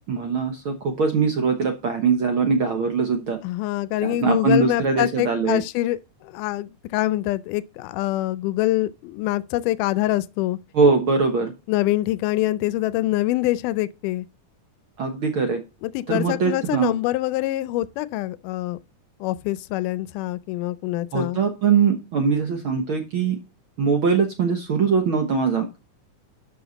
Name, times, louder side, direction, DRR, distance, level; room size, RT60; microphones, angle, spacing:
voice 1, 0.1-3.4 4.0-5.6 10.7-11.5 15.0-15.6 16.1-16.9 21.1-23.4 23.8-25.8, right 5 dB, 60° right, 1.5 m, -21 dB
voice 2, 3.4-10.6 11.7-14.3 15.8-18.8 19.2-21.4, left 16 dB, 85° left, 2.2 m, -25 dB
12.0 x 5.7 x 4.0 m
omnidirectional pair, 3.6 m